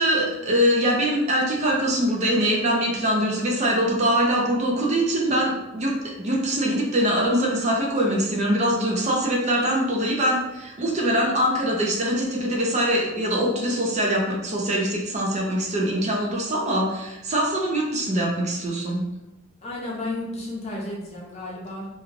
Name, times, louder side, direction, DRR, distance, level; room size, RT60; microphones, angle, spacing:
voice 1, 0.0-19.0, equal, 35° right, -2 dB, 0.5 m, -23 dB
voice 2, 19.6-21.9, left 2 dB, 35° left, -3 dB, 0.6 m, -32 dB
2.4 x 2.3 x 3.1 m, 0.94 s
head